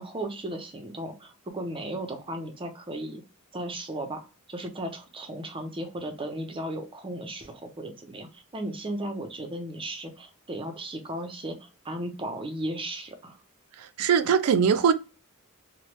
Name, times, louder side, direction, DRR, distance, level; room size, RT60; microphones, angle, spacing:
voice 1, 0.0-3.2 3.5-13.4, right 1 dB, 25° right, 0.5 m, -35 dB
voice 2, 13.8-14.9, right 7 dB, 75° right, 0.4 m, -21 dB
3.0 x 2.1 x 2.9 m
head